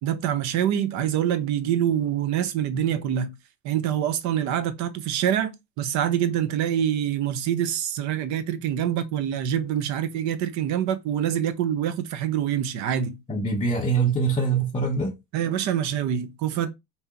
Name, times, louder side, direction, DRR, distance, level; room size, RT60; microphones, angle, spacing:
voice 1, 0.0-3.3 3.6-13.2 15.3-16.7, right 10 dB, 55° right, 0.7 m, -25 dB
voice 2, 13.3-15.1, right 4 dB, 15° left, 0.7 m, -23 dB
2.8 x 2.8 x 3.6 m
cardioid pair, 135°, 34 cm